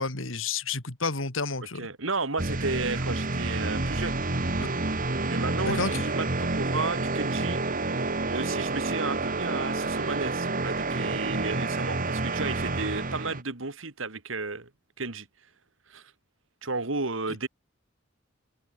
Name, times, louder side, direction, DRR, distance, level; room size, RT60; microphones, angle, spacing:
voice 1, 0.0-1.9 4.6-4.7 5.6-6.0, left 4 dB, 75° left, 3.1 m, -30 dB
voice 2, 1.7-4.2 5.3-7.6 8.0-14.7 15.0-15.3 15.9-16.0 16.6-17.5, right 3 dB, 75° right, 2.3 m, -33 dB
sound 1, 2.4-13.4, right 2 dB, 45° right, 2.5 m, -29 dB
head